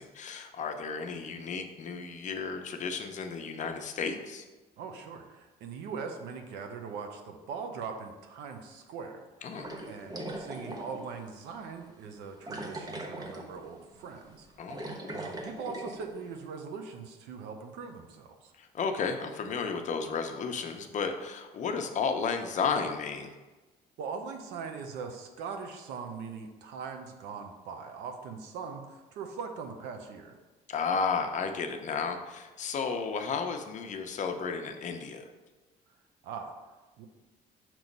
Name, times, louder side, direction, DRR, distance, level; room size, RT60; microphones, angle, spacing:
voice 1, 0.0-4.4 9.4-9.7 14.6-14.9 18.6-23.3 30.7-35.2, left 5 dB, 45° left, 5 dB, 0.7 m, -33 dB
voice 2, 4.8-18.5 24.0-30.4 36.2-36.5 37.0-37.1, right 5 dB, 85° right, 5 dB, 0.8 m, -41 dB
sound 1, 9.6-11.1 11.5-11.6 12.5-13.6 13.9-14.1 14.5-16.0, right 1 dB, 20° right, 0.9 m, -39 dB
6.2 x 3.0 x 5.3 m, 1.2 s
cardioid pair, 110°, 17 cm